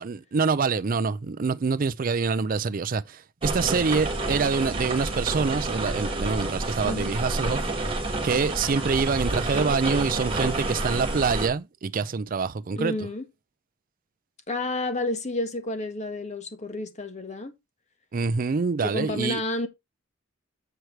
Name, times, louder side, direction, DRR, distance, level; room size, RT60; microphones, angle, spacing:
voice 1, 0.0-8.0 8.2-12.9 18.1-19.4, right 5 dB, 45° right, 0.5 m, -26 dB
sound 1, 3.4-11.5, right 2 dB, 30° right, 1.9 m, -29 dB
voice 2, 6.8-7.1 12.7-13.2 14.5-17.5 18.8-19.7, left 2 dB, 35° left, 1.6 m, -30 dB
7.9 x 4.8 x 4.5 m
head